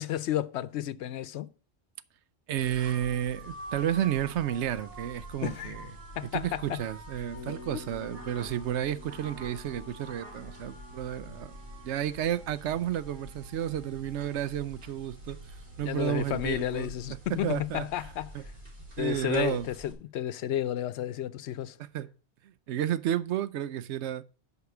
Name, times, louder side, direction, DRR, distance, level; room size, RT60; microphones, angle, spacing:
voice 1, 0.0-1.5 5.4-5.8 6.2-6.8 7.5-7.6 15.8-18.3 19.0-21.8, left 12 dB, 80° left, 0.9 m, -32 dB
voice 2, 2.5-5.9 6.3-11.6 11.8-17.9 18.3-18.5 19.0-19.7 21.8-22.1 22.4-24.2, right 11 dB, 85° right, 0.9 m, -32 dB
sound 1, 2.6-19.9, right 1 dB, 50° right, 2.5 m, -46 dB
Bass guitar, 7.3-15.4, left 3 dB, 35° right, 3.0 m, -52 dB
8.1 x 5.0 x 7.0 m
omnidirectional pair, 1.1 m